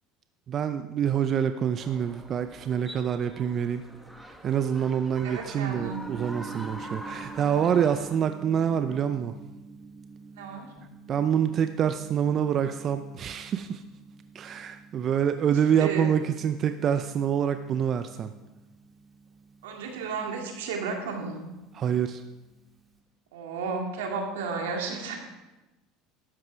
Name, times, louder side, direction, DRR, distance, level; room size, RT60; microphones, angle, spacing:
voice 1, 0.5-3.8 4.3-9.3 11.1-13.8 14.3-18.3 21.7-22.2, right 8 dB, 45° right, 9 dB, 0.6 m, -26 dB
sound 1, 1.8-8.2, equal, ahead, 1.5 m, -44 dB
voice 2, 5.2-6.0 10.4-10.7 15.7-16.1 19.6-21.5 23.3-25.2, right 4 dB, 90° right, 1 dB, 2.3 m, -33 dB
Gong, 5.7-23.0, right 5 dB, 15° right, 2.3 m, -47 dB
12.5 x 9.6 x 4.6 m, 1.1 s
supercardioid pair, 95°, 0 cm